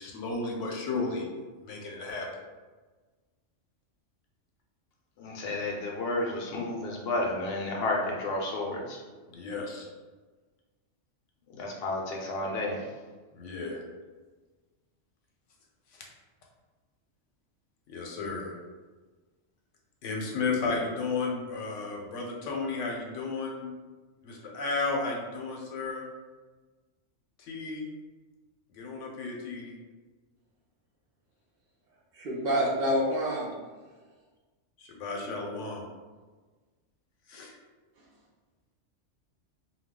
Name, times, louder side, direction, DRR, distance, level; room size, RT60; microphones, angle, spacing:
voice 1, 0.0-1.3 1.6-2.3 9.3-9.9 13.3-13.8 15.9-16.0 17.9-18.5 20.0-23.7 24.2-26.0 27.4-27.8 28.7-29.7 34.8-35.8 37.3-37.5, left 3 dB, 85° left, -1 dB, 1.0 m, -33 dB
voice 2, 5.2-9.0 11.5-12.9, left 2 dB, 60° left, -1 dB, 0.7 m, -31 dB
voice 3, 32.1-33.5, equal, 60° right, -3 dB, 0.7 m, -27 dB
2.3 x 2.2 x 3.5 m, 1.3 s
omnidirectional pair, 1.2 m